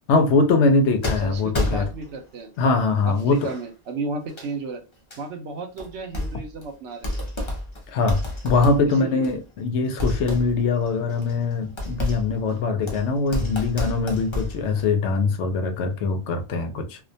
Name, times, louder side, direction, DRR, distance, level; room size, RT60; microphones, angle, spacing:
voice 1, 0.1-1.9 2.6-3.4 7.9-17.0, left 3 dB, 85° left, 0.9 m, -22 dB
sound 1, 1.0-2.3 3.0-3.7 4.3-4.5 5.1-5.2 5.8-6.6 6.9-9.6 10.0-14.9, left 1 dB, 35° left, 0.5 m, -30 dB
voice 2, 1.2-2.5 3.0-4.8 5.2-7.2 8.8-9.3, right 3 dB, 90° right, 1.0 m, -33 dB
2.4 x 2.1 x 2.6 m
omnidirectional pair, 1.2 m